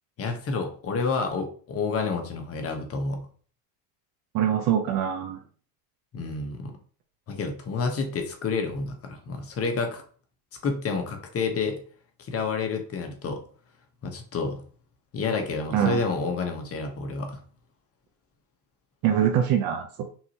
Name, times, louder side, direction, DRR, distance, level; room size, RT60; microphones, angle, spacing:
voice 1, 0.2-3.2 6.1-6.7 7.3-10.0 10.6-11.8 12.2-13.4 14.0-14.6 15.1-17.4, left 4 dB, 30° left, 4 dB, 1.0 m, -29 dB
voice 2, 4.3-5.4 15.7-16.0 19.0-20.1, right 9 dB, 50° right, 3 dB, 0.7 m, -24 dB
5.7 x 2.7 x 2.9 m, 0.43 s
supercardioid pair, 120°, 46 cm